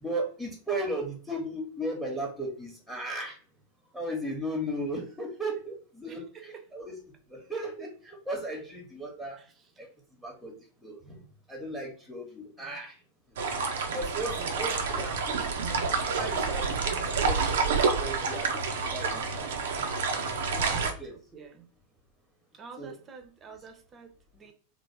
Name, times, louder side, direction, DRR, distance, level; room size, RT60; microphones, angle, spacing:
voice 1, 0.0-3.4 3.9-7.0 7.3-9.4 9.8-9.9 10.2-10.5 10.8-11.2 11.5-12.9 13.9-15.4 16.1-18.6 18.9-19.5 20.1-20.3 20.6-21.1 22.8-22.9, right 1 dB, ahead, -1 dB, 0.9 m, -36 dB
voice 2, 6.1-6.6 9.3-9.7 12.6-12.8 14.3-14.8 20.5-21.7 22.5-24.5, right 5 dB, 25° right, 5 dB, 0.7 m, -49 dB
sound 1, 13.4-20.9, right 5 dB, 65° right, 0.5 m, -28 dB
3.4 x 2.1 x 3.3 m, 0.41 s
figure-of-eight pair, 90°, 0 cm